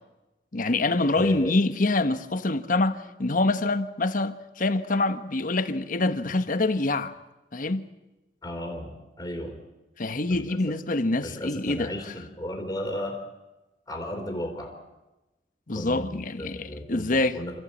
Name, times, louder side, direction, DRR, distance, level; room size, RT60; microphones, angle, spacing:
voice 1, 0.5-7.1 7.5-7.9 10.0-11.9 15.7-17.4, left 2 dB, 50° left, 1.1 m, -25 dB
voice 2, 1.1-1.5 8.4-9.6 10.3-10.5 11.2-13.2 13.9-14.8 15.7-17.6, equal, 20° left, 3.1 m, -34 dB
27.5 x 14.5 x 8.7 m
head